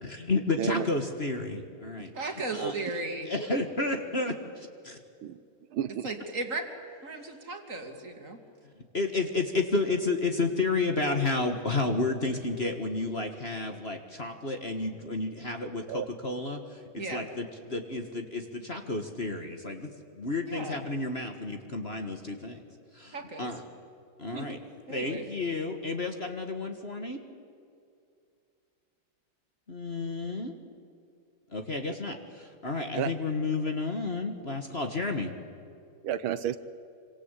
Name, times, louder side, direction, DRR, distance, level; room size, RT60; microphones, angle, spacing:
voice 1, 0.0-2.1 2.5-2.7 3.3-5.0 8.9-22.6 22.9-23.6 24.2-24.6 24.9-27.2 29.7-30.5 31.5-35.3, left 3 dB, 30° left, 5 dB, 1.7 m, -31 dB
voice 2, 2.1-3.3 6.0-6.6 7.0-8.4 17.0-17.3 20.5-20.8 23.1-23.5 24.3-24.5 24.9-25.2, right 2 dB, 35° right, 5 dB, 2.8 m, -36 dB
voice 3, 5.7-6.1 15.9-16.1 33.0-33.1 36.0-36.6, right 10 dB, 80° right, 13 dB, 1.7 m, -31 dB
26.5 x 25.5 x 8.4 m, 2.4 s
omnidirectional pair, 2.3 m